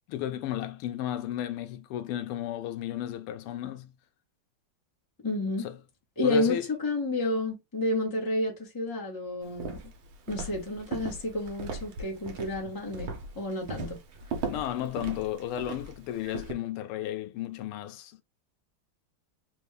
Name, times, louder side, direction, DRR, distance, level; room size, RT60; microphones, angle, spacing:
voice 1, 0.1-3.9 5.6-5.8 6.2-6.7 14.5-18.2, left 12 dB, 85° left, 1.5 m, -34 dB
voice 2, 5.2-5.7 6.2-9.8 10.3-14.0, left 2 dB, 15° left, 1.0 m, -30 dB
Walk footsteps, 9.5-16.5, right 4 dB, 70° right, 1.7 m, -38 dB
4.0 x 2.6 x 3.3 m
omnidirectional pair, 2.4 m